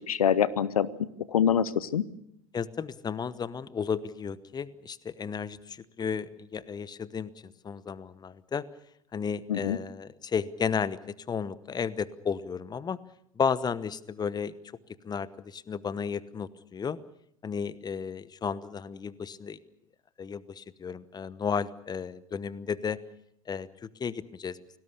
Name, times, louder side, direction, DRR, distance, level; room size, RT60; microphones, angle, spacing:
voice 1, 0.1-2.0 9.5-9.8, left 8 dB, 80° left, 19 dB, 0.9 m, -25 dB
voice 2, 2.5-8.6 9.1-13.0 13.4-14.5 15.0-17.0 17.4-19.6 20.2-23.0 23.5-24.6, left 6 dB, 20° left, 18 dB, 1.1 m, -33 dB
28.5 x 19.0 x 6.7 m, 0.74 s
figure-of-eight pair, 75°, 18 cm